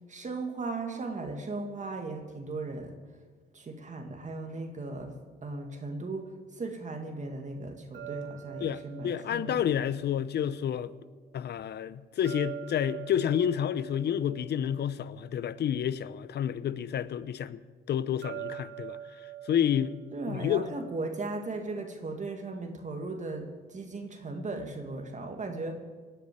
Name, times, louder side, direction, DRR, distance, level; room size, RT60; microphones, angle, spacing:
voice 1, 0.1-3.0 3.5-5.1 5.4-9.7 20.1-25.7, right 3 dB, 35° right, 2.0 m, -37 dB
sound 1, 7.9-11.0 12.3-15.8 18.2-21.3, right 12 dB, 65° right, 0.8 m, -44 dB
voice 2, 8.6-10.9 11.3-17.6 17.9-19.0 19.5-19.9 20.3-20.6, left 9 dB, 55° left, 0.7 m, -29 dB
18.0 x 6.7 x 9.8 m
cardioid pair, 90°, 20 cm